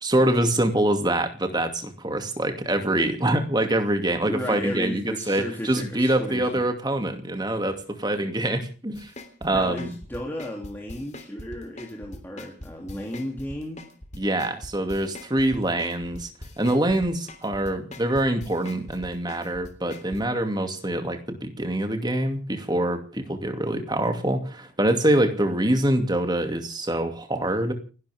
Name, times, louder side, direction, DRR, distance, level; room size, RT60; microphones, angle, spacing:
voice 1, 0.0-9.1 9.4-9.9 14.2-16.3 16.6-27.7, right 1 dB, 20° right, 6 dB, 2.4 m, -25 dB
voice 2, 4.2-6.6 9.5-13.9, left 1 dB, 10° left, -1 dB, 2.9 m, -34 dB
sound 1, 8.9-20.2, left 1 dB, 35° left, 3.2 m, -41 dB
30.0 x 12.0 x 3.6 m, 0.38 s
head